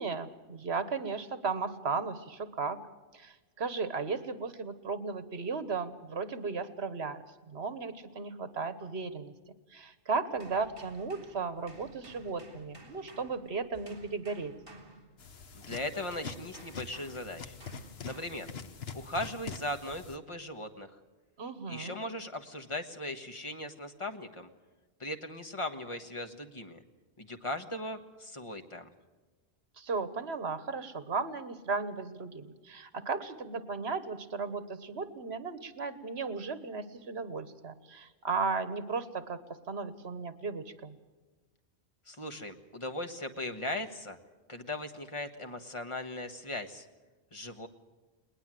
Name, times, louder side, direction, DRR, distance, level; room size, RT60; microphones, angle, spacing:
voice 1, 0.0-2.8 3.1-9.3 9.7-14.5 21.4-22.0 29.8-39.4 39.7-41.0, right 4 dB, 70° right, 13 dB, 1.5 m, -35 dB
sound 1, 10.3-15.6 16.1-18.6 19.3-19.5, right 1 dB, 30° right, 3.6 m, -55 dB
sound 2, 15.2-20.2, left 5 dB, 65° left, 1.3 m, -44 dB
voice 2, 15.5-17.6 18.0-18.5 18.9-21.0 21.7-24.5 25.0-26.8 27.2-28.9 42.1-44.2 44.5-46.9 47.3-47.7, left 1 dB, 30° left, 7 dB, 1.5 m, -38 dB
21.0 x 19.5 x 7.7 m, 1.3 s
omnidirectional pair, 1.1 m